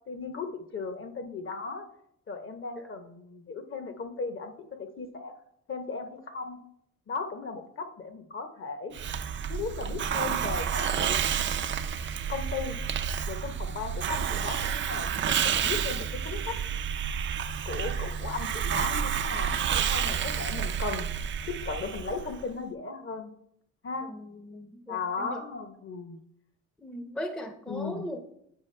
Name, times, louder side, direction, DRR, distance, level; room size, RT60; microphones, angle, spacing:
voice 1, 0.1-1.8 2.3-4.5 4.8-5.3 5.7-6.6 7.1-8.9 9.5-11.2 12.3-12.8 13.3-16.6 17.7-21.1 21.5-23.3 23.8-24.1 24.9-26.2 27.7-28.1, left 4 dB, 45° left, 8 dB, 0.9 m, -36 dB
Hiss, 8.9-22.4, right 8 dB, 40° right, 0.4 m, -30 dB
voice 2, 24.1-25.4 26.8-28.2, equal, 5° left, 6 dB, 0.6 m, -38 dB
8.2 x 4.7 x 3.2 m, 0.72 s
cardioid pair, 90°, 30 cm